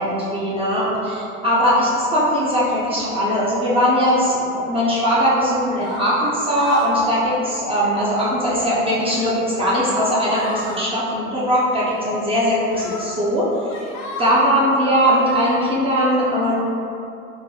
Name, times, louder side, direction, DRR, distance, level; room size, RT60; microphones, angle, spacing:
voice 1, 0.0-13.5 14.2-16.5, equal, 15° right, -8 dB, 0.6 m, -20 dB
sound 1, 5.7-6.0 6.4-7.0 7.3-7.6 7.9-8.4 8.9-9.4 9.7-9.9 10.2-10.8 11.9-12.0 12.7-13.1 13.5-14.4 15.1-15.6, left 3 dB, 70° left, 0.7 m, -33 dB
3.8 x 2.1 x 3.0 m, 2.6 s
hypercardioid pair, 90°, 41 cm